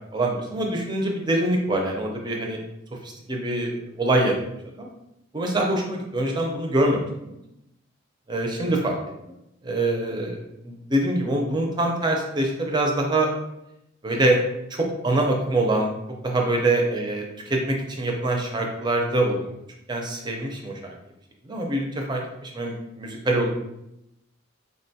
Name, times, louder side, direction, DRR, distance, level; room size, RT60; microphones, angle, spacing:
voice 1, 0.1-2.6 3.0-4.4 4.8-4.9 5.3-7.3 8.3-9.0 9.6-10.4 10.6-13.3 14.0-14.4 14.7-15.9 16.2-17.2 17.5-19.5 19.9-21.0 21.5-23.5, right 1 dB, 20° right, 1 dB, 0.4 m, -24 dB
3.6 x 2.2 x 2.7 m, 0.87 s
head